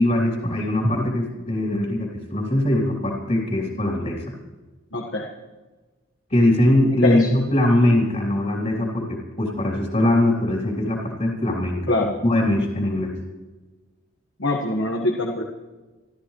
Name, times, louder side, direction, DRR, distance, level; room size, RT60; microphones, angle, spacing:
voice 1, 0.0-4.4 6.3-13.1, left 1 dB, 35° left, -1 dB, 3.1 m, -21 dB
voice 2, 4.9-5.3 7.0-7.3 11.9-12.1 14.4-15.4, left 2 dB, 65° left, 0 dB, 1.6 m, -23 dB
27.5 x 13.5 x 3.2 m, 1.2 s
head